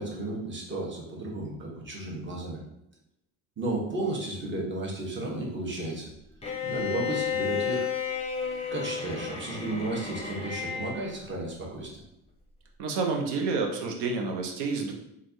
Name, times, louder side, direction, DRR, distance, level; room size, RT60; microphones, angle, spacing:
voice 1, 0.0-2.6 3.6-6.1 6.6-7.9 8.7-12.0, right 2 dB, 25° right, -2 dB, 1.0 m, -33 dB
Bowed string instrument, 6.4-11.1, left 7 dB, 15° left, 0.6 m, -32 dB
voice 2, 12.8-14.9, right 4 dB, 70° right, 3 dB, 0.7 m, -29 dB
3.2 x 2.4 x 2.6 m, 0.82 s
supercardioid pair, 85°, 42 cm